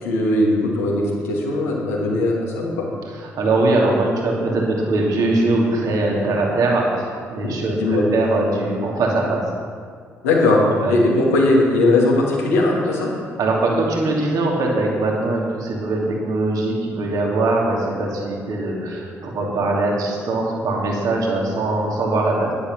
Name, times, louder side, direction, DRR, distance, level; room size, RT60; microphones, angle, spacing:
voice 1, 0.0-2.9 7.8-8.0 10.2-10.6 10.9-13.1, left 2 dB, 75° left, -3 dB, 2.6 m, -19 dB
voice 2, 3.2-9.4 10.7-11.0 13.4-22.5, right 2 dB, 55° right, -1 dB, 2.8 m, -21 dB
11.5 x 11.0 x 6.1 m, 2.1 s
figure-of-eight pair, 45°, 7 cm